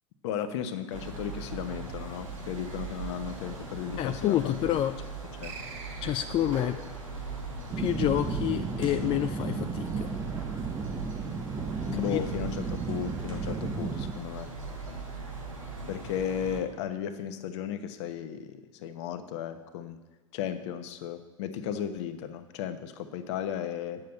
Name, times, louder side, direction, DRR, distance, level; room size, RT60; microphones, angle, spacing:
voice 1, 0.2-4.8 5.4-5.5 11.9-14.5 15.9-20.0 20.3-24.0, left 9 dB, 60° left, 9 dB, 1.0 m, -35 dB
sound 1, 0.9-16.6, right 3 dB, 90° right, 2.4 m, -39 dB
voice 2, 4.0-4.9 6.0-6.8 7.8-10.1 11.9-12.2, left 12 dB, 30° left, 9 dB, 0.5 m, -28 dB
sound 2, 5.4-6.6, right 4 dB, 40° right, 4.4 m, -44 dB
sound 3, 7.7-14.1, right 5 dB, 20° right, 0.7 m, -34 dB
9.0 x 7.3 x 7.9 m, 1.2 s
figure-of-eight pair, 85°, 17 cm